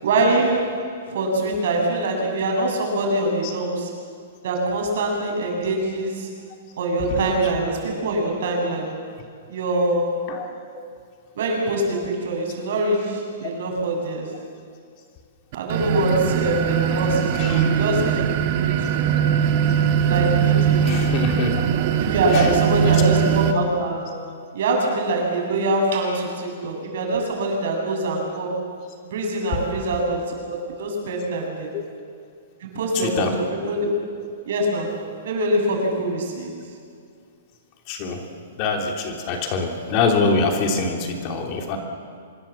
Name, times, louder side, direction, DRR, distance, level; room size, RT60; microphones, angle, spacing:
voice 1, 0.0-0.8 1.1-3.9 4.4-6.3 6.8-9.0 9.5-10.2 11.4-14.4 15.5-19.0 20.1-20.8 22.0-24.1 24.5-28.6 29.0-31.7 32.6-33.9 34.5-35.0 35.2-36.5, right 2 dB, 65° right, 1 dB, 7.1 m, -24 dB
sound 1, 15.5-23.5, right 8 dB, 40° right, 1.9 m, -20 dB
voice 2, 17.3-17.7 20.8-21.6 22.3-23.0 31.7-31.8 32.9-33.3 37.9-38.2 38.6-41.8, left 4 dB, 35° left, 2 dB, 3.2 m, -25 dB
25.0 x 22.0 x 7.5 m, 2.3 s
hypercardioid pair, 160°, 0 cm